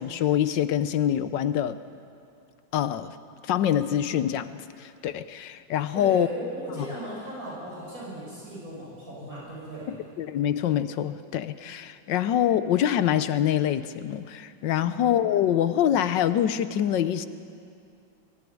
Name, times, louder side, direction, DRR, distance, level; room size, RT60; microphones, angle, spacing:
voice 1, 0.0-1.8 2.7-3.2 3.4-6.3 10.2-17.3, left 10 dB, 70° left, 13 dB, 1.3 m, -25 dB
voice 2, 5.9-9.9 14.8-15.0, right 1 dB, 45° right, -6 dB, 6.6 m, -37 dB
22.5 x 15.0 x 9.4 m, 2.4 s
omnidirectional pair, 2.1 m